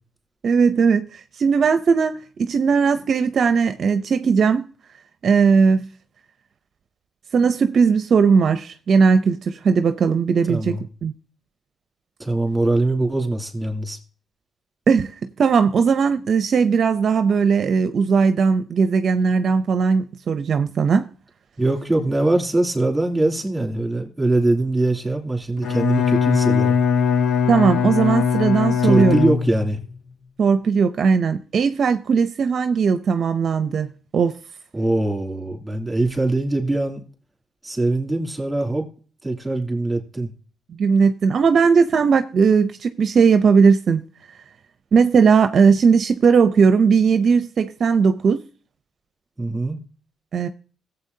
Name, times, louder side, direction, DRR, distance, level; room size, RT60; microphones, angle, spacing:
voice 1, 0.4-4.7 5.2-5.9 7.3-11.1 14.9-15.1 15.4-21.1 27.5-29.2 30.4-33.9 34.1-34.4 40.7-44.0 44.9-48.4 50.3-50.5, right 5 dB, 55° right, 0.6 m, -18 dB
voice 2, 10.5-10.8 12.2-14.0 21.6-26.8 28.8-29.8 34.7-37.0 37.6-38.9 39.2-40.3 49.4-49.8, right 2 dB, 10° right, 2.9 m, -22 dB
Bowed string instrument, 25.6-29.8, left 6 dB, 75° left, 0.8 m, -20 dB
17.0 x 7.9 x 2.7 m
cardioid pair, 90°, 0 cm